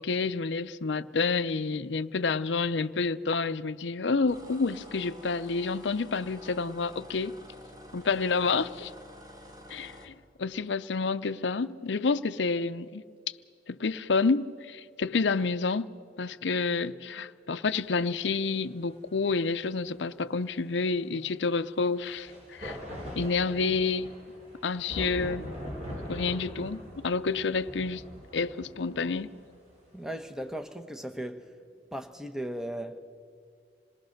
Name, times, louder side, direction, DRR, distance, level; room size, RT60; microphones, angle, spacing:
voice 1, 0.0-7.4 7.9-8.9 9.7-10.1 10.4-13.0 13.7-15.9 16.2-22.8 23.2-24.1 24.6-25.5 26.1-28.0 28.3-29.3, left 4 dB, 85° left, 0.6 m, -29 dB
sound 1, 4.3-10.1, equal, 20° right, 1.8 m, -49 dB
sound 2, 18.1-18.2 22.0-30.4, equal, 40° right, 4.7 m, -42 dB
voice 2, 29.9-31.5 31.9-33.0, right 1 dB, 5° right, 0.9 m, -37 dB
27.0 x 19.5 x 6.5 m
head